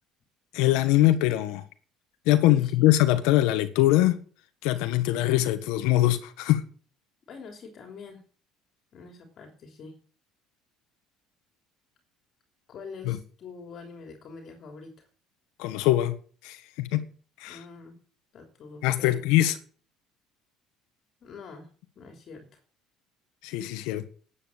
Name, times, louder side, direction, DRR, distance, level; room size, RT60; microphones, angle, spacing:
voice 1, 0.5-1.6 2.3-4.2 4.6-6.6 13.1-13.2 15.6-16.1 16.4-17.0 17.4-17.6 18.8-19.5 23.4-24.0, left 15 dB, 85° left, 1.4 m, -22 dB
voice 2, 2.5-2.9 7.3-8.2 8.9-10.0 12.7-15.0 17.5-18.0 18.3-19.3 21.2-21.7 21.9-22.5, left 4 dB, 45° left, 3.1 m, -45 dB
12.5 x 8.7 x 7.3 m
cardioid pair, 130°, 0 cm